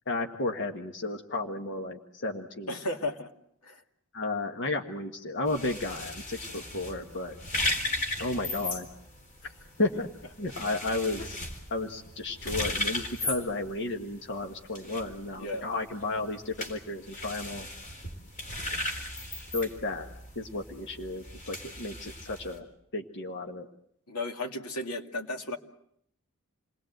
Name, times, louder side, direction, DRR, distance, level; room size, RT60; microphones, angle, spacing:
voice 1, 0.1-2.8 4.1-7.4 8.2-8.9 9.8-10.1 10.4-11.4 11.7-17.7 19.5-20.1 20.4-22.7 22.9-23.7, left 2 dB, 55° left, 4 dB, 1.6 m, -33 dB
voice 2, 2.7-3.3 3.6-3.8 11.2-11.3 15.4-15.7 24.1-25.6, left 2 dB, 90° left, 4 dB, 2.4 m, -34 dB
sound 1, 5.5-22.6, left 1 dB, 35° left, 4.0 m, -37 dB
29.0 x 20.5 x 7.9 m, 0.72 s
head